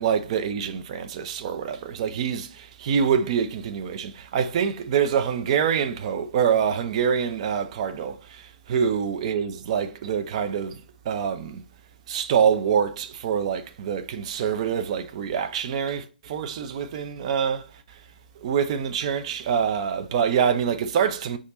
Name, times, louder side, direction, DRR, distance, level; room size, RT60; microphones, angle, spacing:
voice 1, 0.0-10.8 11.1-11.6 12.1-17.6 18.4-21.4, right 7 dB, 40° right, 0.5 m, -25 dB
5.1 x 2.4 x 4.0 m
figure-of-eight pair, 125°, 5 cm